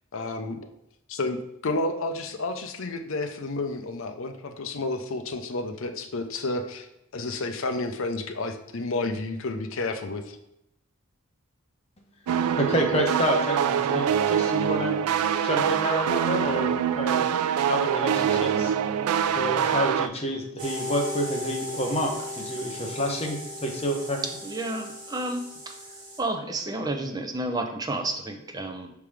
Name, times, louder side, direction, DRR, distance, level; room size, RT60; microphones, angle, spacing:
voice 1, 0.1-0.7 1.1-6.9 7.1-10.4, left 2 dB, 65° left, 7 dB, 0.6 m, -31 dB
sound 1, 12.3-20.1, right 8 dB, 90° right, 0.3 m, -24 dB
voice 2, 12.6-15.0 15.4-17.3 17.7-18.7 19.3-24.2, equal, 25° left, 2 dB, 0.9 m, -28 dB
sound 2, 20.6-26.2, left 1 dB, 40° right, 1.6 m, -37 dB
voice 3, 24.2-25.8 26.2-28.9, right 2 dB, 15° right, 4 dB, 0.5 m, -31 dB
5.8 x 3.5 x 4.8 m, 0.83 s
head